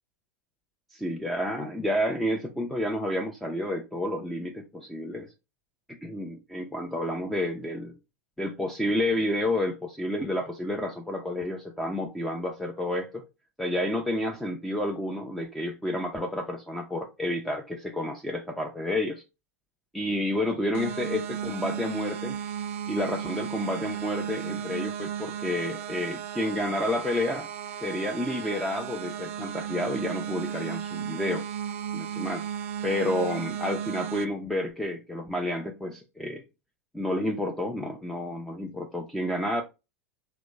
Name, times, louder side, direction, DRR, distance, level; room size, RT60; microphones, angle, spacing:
voice 1, 0.9-5.3 6.0-7.9 8.4-13.2 13.6-19.2 19.9-22.4 22.9-27.5 27.8-31.4 31.9-32.4 32.8-36.4 36.9-39.6, left 1 dB, 5° left, 0.4 m, -30 dB
sound 1, 20.7-34.3, right 9 dB, 60° right, 0.4 m, -35 dB
2.9 x 2.0 x 3.2 m
figure-of-eight pair, 90°, 8 cm